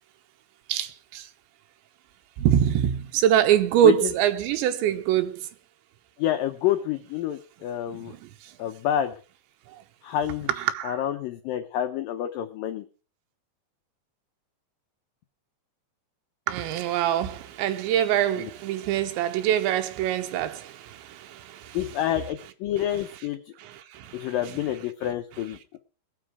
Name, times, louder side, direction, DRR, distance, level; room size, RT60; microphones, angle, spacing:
voice 1, 0.7-1.3 2.4-5.4 7.9-8.2 10.6-11.0 16.5-21.8 23.6-24.5, right 11 dB, 85° right, 3.2 m, -24 dB
voice 2, 6.2-8.1 8.6-9.1 10.0-10.5 10.8-12.8 18.4-18.5 21.7-23.4 24.1-25.8, left 11 dB, 90° left, 1.9 m, -28 dB
21.5 x 7.4 x 4.7 m
omnidirectional pair, 5.1 m